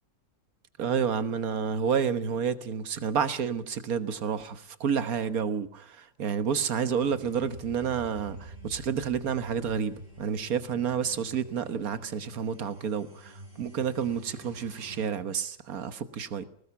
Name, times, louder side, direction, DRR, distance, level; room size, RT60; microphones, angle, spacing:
voice 1, 0.8-16.4, right 7 dB, 80° right, 1.6 m, -30 dB
sound 1, 7.0-15.1, right 1 dB, 55° right, 5.1 m, -47 dB
20.0 x 19.0 x 7.1 m
omnidirectional pair, 1.5 m